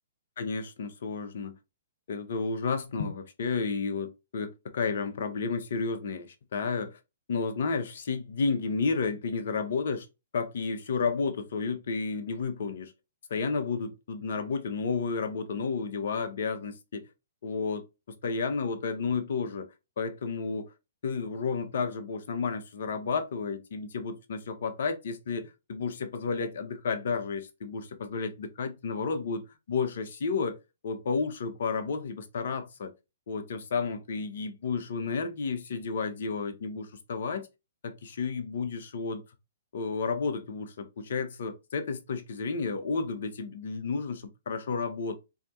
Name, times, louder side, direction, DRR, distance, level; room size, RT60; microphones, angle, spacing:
voice 1, 0.4-1.6 2.1-7.0 7.3-10.1 10.3-12.9 13.3-17.0 17.4-17.8 18.2-19.7 20.0-20.7 21.0-30.6 30.8-32.9 33.3-37.5 37.8-39.2 39.7-45.2, left 4 dB, 50° left, 0.7 m, -32 dB
4.3 x 2.8 x 2.4 m
figure-of-eight pair, 120°, 0 cm